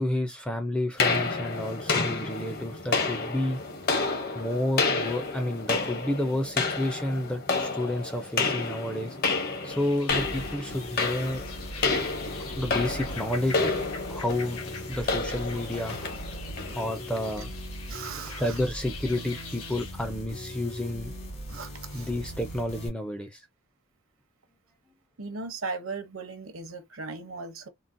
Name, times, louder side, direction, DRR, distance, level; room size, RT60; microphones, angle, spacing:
voice 1, 0.0-3.6 4.3-9.2 9.6-11.4 12.6-13.6 14.1-14.6 14.8-16.0 16.8-17.5 18.4-21.1 21.9-23.5, left 1 dB, 5° left, 0.4 m, -30 dB
sound 1, 1.0-17.3, left 4 dB, 45° left, 0.7 m, -30 dB
sound 2, 9.7-19.9, left 5 dB, 85° left, 0.9 m, -44 dB
sound 3, 10.1-22.9, equal, 65° left, 1.5 m, -40 dB
voice 2, 17.9-18.6 21.5-22.1 25.2-27.7, right 4 dB, 70° right, 0.7 m, -37 dB
3.8 x 2.0 x 2.5 m
head